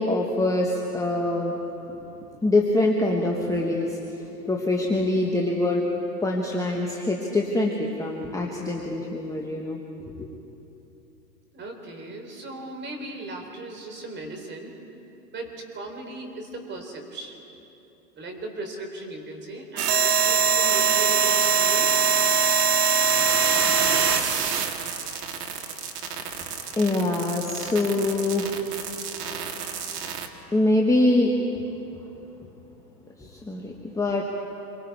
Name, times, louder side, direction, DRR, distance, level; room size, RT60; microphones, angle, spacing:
voice 1, 0.0-1.6 2.4-4.0 4.4-5.9 6.2-9.8 10.2-10.3 26.7-28.7 30.5-31.3 33.2-34.2, left 2 dB, 5° left, 0 dB, 1.3 m, -24 dB
voice 2, 11.5-14.7 15.3-17.5 18.2-22.0, right 2 dB, 20° right, 3 dB, 4.0 m, -37 dB
sound 1, 19.8-30.3, right 5 dB, 70° right, 2.0 m, -23 dB
27.5 x 23.5 x 4.8 m, 2.9 s
hypercardioid pair, 115°, 50 cm